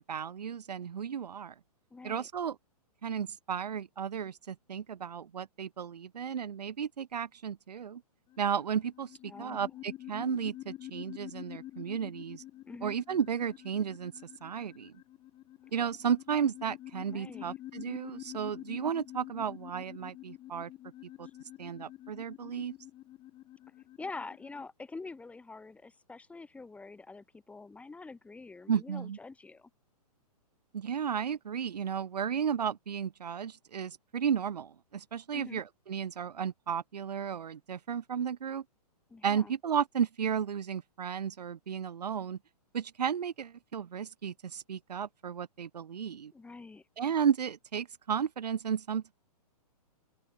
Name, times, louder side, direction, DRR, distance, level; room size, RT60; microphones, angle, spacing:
voice 1, 0.0-1.5 2.0-2.6 3.0-8.0 8.4-12.4 12.8-14.1 14.4-14.9 15.7-20.7 21.2-21.3 21.6-22.7 28.7-29.2 30.7-38.6 39.2-42.4 42.7-46.3 47.0-49.1, right 8 dB, 90° right, 1.9 m, -33 dB
voice 2, 1.9-2.3 9.3-9.7 12.6-13.0 17.1-17.5 24.0-29.7 35.3-35.6 39.1-39.5 46.3-46.8, left 3 dB, 5° left, 2.9 m, -46 dB
sound 1, 8.3-24.6, left 14 dB, 25° left, 6.4 m, -47 dB
open air
hypercardioid pair, 150°, 20 cm